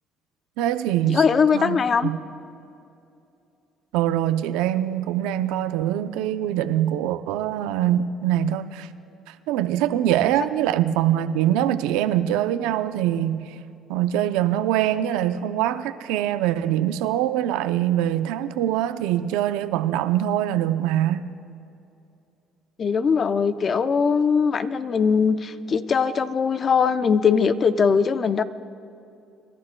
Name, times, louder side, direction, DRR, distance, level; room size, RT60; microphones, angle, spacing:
voice 1, 0.6-1.2 1.5-2.2 3.9-8.9 9.3-13.6 13.9-21.3, right 11 dB, 85° right, 0.5 m, -23 dB
voice 2, 1.1-2.1 22.8-28.4, left 6 dB, 40° left, 0.5 m, -21 dB
27.0 x 12.0 x 2.2 m
supercardioid pair, 90°, 0 cm